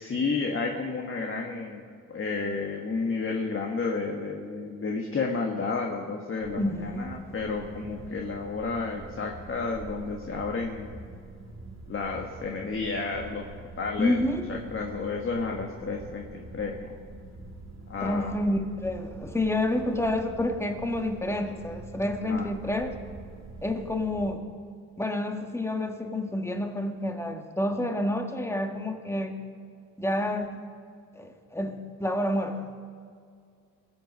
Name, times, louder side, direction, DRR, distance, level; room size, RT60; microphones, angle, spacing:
voice 1, 0.0-1.8 2.1-10.9 11.9-13.4 13.8-14.2 14.5-16.9 17.9-18.4 22.3-22.5, left 4 dB, 35° left, 1 dB, 1.5 m, -31 dB
sound 1, 6.4-24.4, right 2 dB, 50° right, 2.6 m, -45 dB
voice 2, 6.6-7.2 14.0-14.4 18.0-22.9 23.6-24.5 25.0-29.3 30.0-30.5 31.1-32.7, left 1 dB, 5° left, 5 dB, 1.6 m, -29 dB
21.0 x 7.9 x 5.6 m, 2.2 s
supercardioid pair, 75°, 35 cm